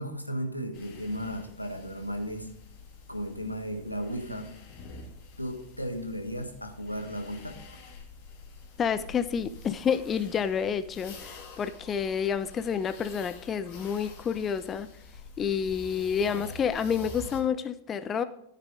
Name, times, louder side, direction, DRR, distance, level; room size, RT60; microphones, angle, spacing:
voice 1, 0.0-2.5 3.1-4.5 5.4-7.6, equal, 90° left, 4 dB, 1.5 m, -35 dB
sound 1, 0.7-17.4, left 3 dB, 40° left, 2.5 m, -47 dB
voice 2, 8.8-14.9 15.4-18.2, left 7 dB, 25° left, 13 dB, 0.5 m, -29 dB
14.0 x 6.6 x 3.8 m, 0.77 s
figure-of-eight pair, 90°, 0 cm